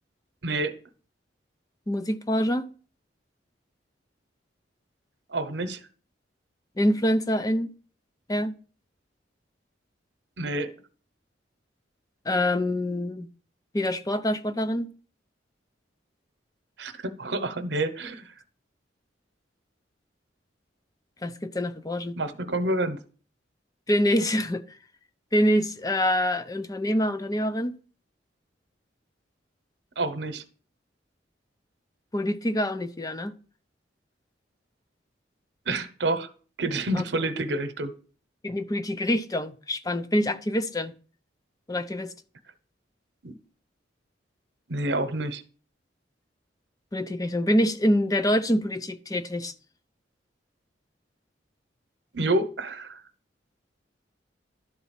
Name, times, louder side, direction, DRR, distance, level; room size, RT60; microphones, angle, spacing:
voice 1, 0.4-0.8 5.3-5.8 10.4-10.7 16.8-18.2 22.2-23.0 30.0-30.4 35.7-36.3 36.6-37.9 43.2-43.3 44.7-45.4 52.1-53.0, right 2 dB, 70° right, 1.0 m, -28 dB
voice 2, 1.9-2.6 6.8-7.7 8.3-8.5 12.3-13.3 13.7-14.9 21.2-22.1 23.9-24.6 25.3-27.8 32.1-33.3 36.9-37.0 38.4-40.9 41.7-42.1 46.9-49.5, equal, 20° left, 0.6 m, -25 dB
11.5 x 4.1 x 7.2 m
head